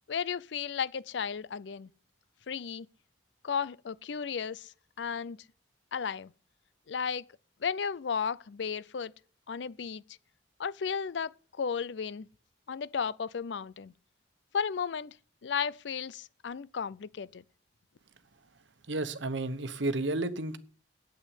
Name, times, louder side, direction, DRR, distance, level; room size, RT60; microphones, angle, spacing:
voice 1, 0.1-1.9 2.5-2.9 3.4-5.4 5.9-6.3 6.9-7.2 7.6-9.1 9.5-10.0 10.6-11.3 11.6-12.3 12.7-13.9 14.5-15.1 15.4-17.4, left 6 dB, 75° left, 0.5 m, -34 dB
voice 2, 18.8-20.6, right 2 dB, 90° right, 1.1 m, -32 dB
9.0 x 8.5 x 8.3 m
head